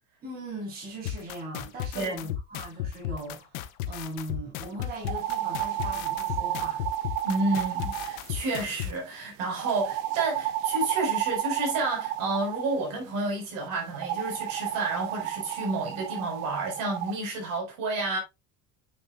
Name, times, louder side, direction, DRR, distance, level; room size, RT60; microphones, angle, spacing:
voice 1, 0.2-6.9, right 1 dB, 20° right, 3.4 m, -39 dB
sound 1, 1.0-8.9, left 11 dB, 80° left, 1.0 m, -34 dB
sound 2, 5.0-8.9 9.6-12.9 13.9-17.2, right 13 dB, 90° right, 0.9 m, -32 dB
voice 2, 7.2-18.2, right 2 dB, 55° right, 4.4 m, -30 dB
8.9 x 6.4 x 2.3 m
cardioid pair, 175°, 40 cm